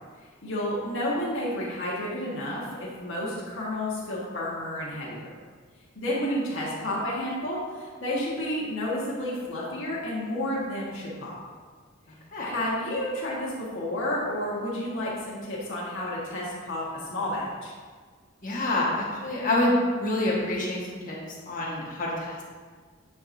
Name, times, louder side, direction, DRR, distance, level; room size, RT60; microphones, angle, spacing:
voice 1, 0.4-5.2 5.9-11.4 12.4-17.7, left 1 dB, 70° left, -7 dB, 1.5 m, -31 dB
voice 2, 18.4-21.2 21.5-22.4, left 1 dB, 40° left, -4 dB, 1.4 m, -27 dB
9.3 x 4.9 x 2.7 m, 1.5 s
head